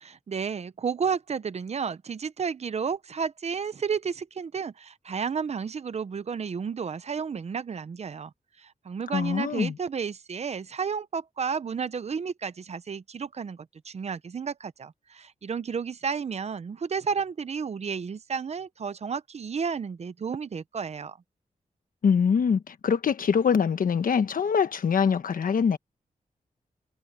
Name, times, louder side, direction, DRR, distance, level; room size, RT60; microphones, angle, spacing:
voice 1, 0.0-8.3 8.6-21.2, right 6 dB, 50° right, 0.7 m, -32 dB
voice 2, 9.1-9.8 22.0-25.8, left 6 dB, 75° left, 1.2 m, -24 dB
wide cardioid pair, 150°, 14 cm